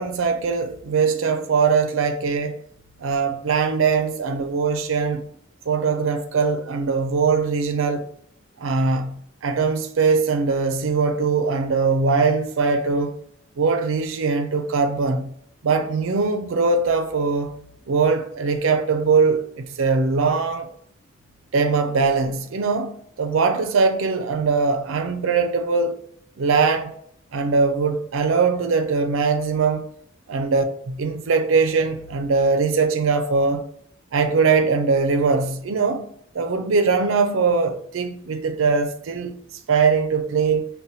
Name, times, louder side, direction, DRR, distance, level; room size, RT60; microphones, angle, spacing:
voice 1, 0.0-2.6 3.0-5.3 5.7-8.0 8.6-13.2 13.6-15.3 15.6-17.5 17.9-20.7 21.5-26.0 26.4-26.9 27.3-29.9 30.3-33.7 34.1-36.1 36.3-39.4 39.7-40.7, right 4 dB, 85° right, 0.5 m, -21 dB
5.4 x 2.2 x 2.6 m
head